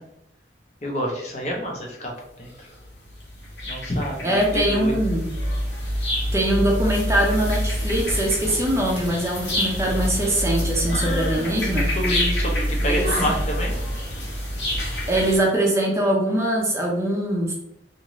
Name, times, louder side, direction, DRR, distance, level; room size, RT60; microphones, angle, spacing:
voice 1, 0.8-2.1 2.4-2.7 3.7-4.9 10.9-11.5 12.0-13.8, equal, 40° left, 0 dB, 0.6 m, -28 dB
sound 1, 2.5-15.4, equal, 75° left, 1.0 m, -26 dB
voice 2, 4.2-5.3 6.3-11.9 12.8-13.0 15.1-17.5, right 1 dB, 15° right, -2 dB, 0.5 m, -22 dB
2.6 x 2.5 x 3.0 m, 0.77 s
head